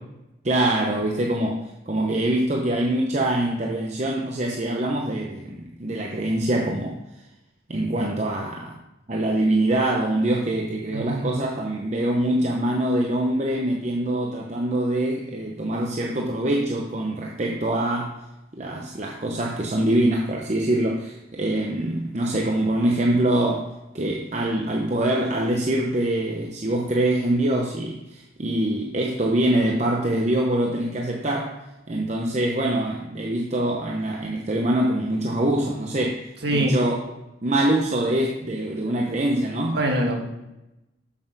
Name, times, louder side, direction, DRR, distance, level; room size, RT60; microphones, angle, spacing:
voice 1, 0.4-7.0 7.7-8.8 9.1-18.2 18.6-23.7 23.9-31.6 31.9-37.0 37.4-39.8, right 1 dB, 35° right, 0 dB, 0.8 m, -24 dB
voice 2, 10.9-11.3 36.4-36.7 39.7-40.2, right 1 dB, 55° right, 1 dB, 1.7 m, -24 dB
7.1 x 6.7 x 6.0 m, 0.95 s
head